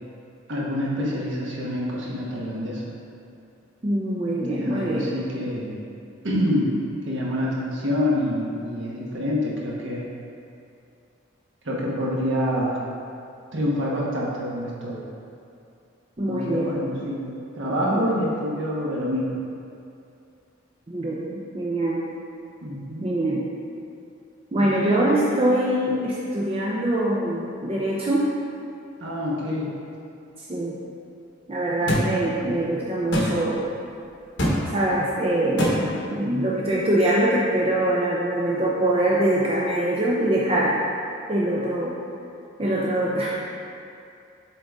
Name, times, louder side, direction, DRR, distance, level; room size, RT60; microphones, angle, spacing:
voice 1, 0.5-2.8 4.5-5.8 6.2-6.7 7.1-10.0 11.6-12.7 13.5-15.0 16.3-17.2 17.6-19.4 22.6-23.1 24.6-25.2 29.0-29.7 31.8-32.2 35.7-36.1, equal, 65° right, -5 dB, 1.2 m, -27 dB
voice 2, 3.8-5.1 16.2-16.8 17.9-18.1 20.9-22.1 23.0-23.5 24.5-28.4 30.5-30.8 31.5-33.6 34.7-40.8 41.3-42.0 42.6-43.3, right 1 dB, 30° right, -5 dB, 0.5 m, -23 dB
sound 1, 31.9-32.1 33.1-33.3 34.4-34.6 35.6-35.7, equal, 60° left, 1.2 m, -21 dB
7.6 x 3.9 x 3.5 m, 2.5 s
head